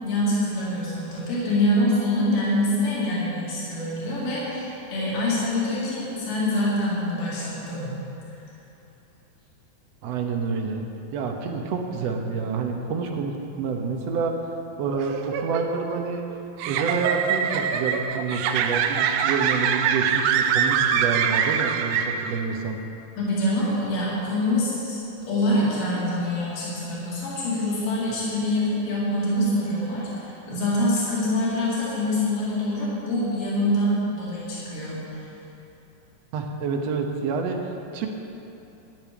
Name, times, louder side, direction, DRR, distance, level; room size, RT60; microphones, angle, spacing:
voice 1, 0.0-7.9 23.2-25.0 25.3-35.3, left 1 dB, 75° left, -8 dB, 4.1 m, -25 dB
voice 2, 10.0-10.9 11.1-14.3 14.8-16.2 16.7-22.8 25.6-25.7 36.3-38.1, right 4 dB, 65° right, 3 dB, 1.7 m, -28 dB
sound 1, 15.0-22.6, right 8 dB, 85° right, 2.1 m, -24 dB
14.0 x 9.7 x 5.2 m, 2.9 s
omnidirectional pair, 3.7 m